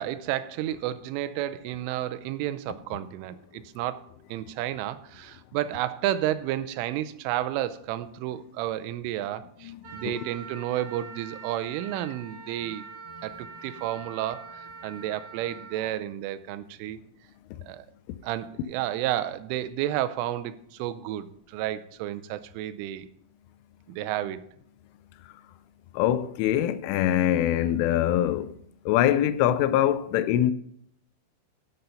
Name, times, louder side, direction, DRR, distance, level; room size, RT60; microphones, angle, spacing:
voice 1, 0.0-4.0 4.3-12.8 13.2-17.0 17.6-17.9 18.2-23.1 23.9-24.5, right 13 dB, 90° right, 3.2 m, -31 dB
voice 2, 9.6-10.1 25.9-28.5 28.9-30.5, left 12 dB, 85° left, 3.2 m, -23 dB
Wind instrument woodwind instrument, 9.8-15.9, right 4 dB, 60° right, 4.4 m, -44 dB
11.0 x 8.0 x 5.6 m
omnidirectional pair, 5.6 m